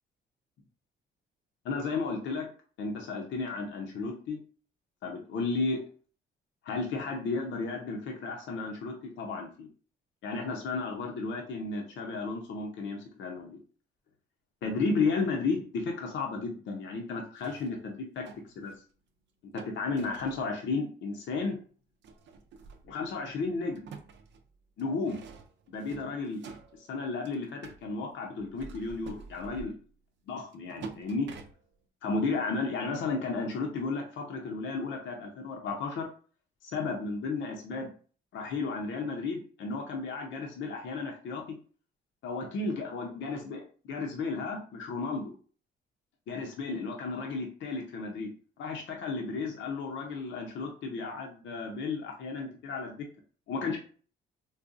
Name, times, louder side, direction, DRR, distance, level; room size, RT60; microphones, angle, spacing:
voice 1, 1.6-2.5 2.8-4.4 5.0-5.8 6.6-9.7 10.2-13.6 14.6-18.3 18.6-18.7 19.4-21.6 22.8-23.9 24.8-25.2 25.7-26.4 26.7-29.7 30.3-31.3 32.0-36.1 36.6-37.9 38.3-41.6 42.2-43.6 43.9-45.3 46.3-53.1 53.5-53.8, left 4 dB, 70° left, 1 dB, 0.7 m, -33 dB
sound 1, 17.4-18.8 19.6-20.5 21.3-21.4 22.0-23.3 23.6-27.9 28.4-29.9 30.5-31.9, right 5 dB, 65° right, 0.5 m, -48 dB
4.0 x 2.2 x 2.5 m, 0.41 s
cardioid pair, 90°, 20 cm